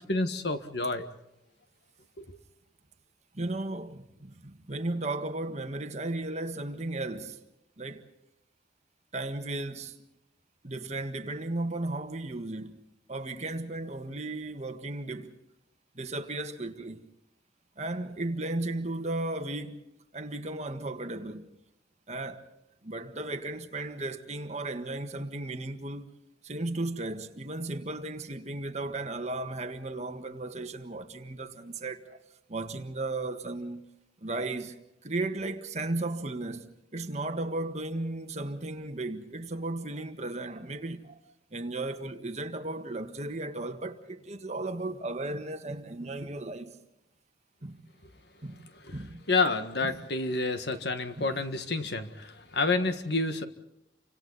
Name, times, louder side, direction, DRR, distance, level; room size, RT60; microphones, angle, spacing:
voice 1, 0.1-1.1 2.2-2.4 48.8-49.0 49.3-53.4, left 3 dB, 65° left, 1.7 m, -29 dB
voice 2, 3.3-7.4 7.8-8.1 9.1-10.0 10.6-12.8 13.1-15.4 15.9-17.1 17.8-21.5 22.1-22.5 22.8-26.1 26.4-32.2 32.5-33.9 34.2-41.2 41.5-46.8 47.6-47.9 48.4-48.7 48.9-49.2 49.8-50.0 51.2-51.4, right 2 dB, 40° right, 1.6 m, -35 dB
30.0 x 25.5 x 4.1 m
head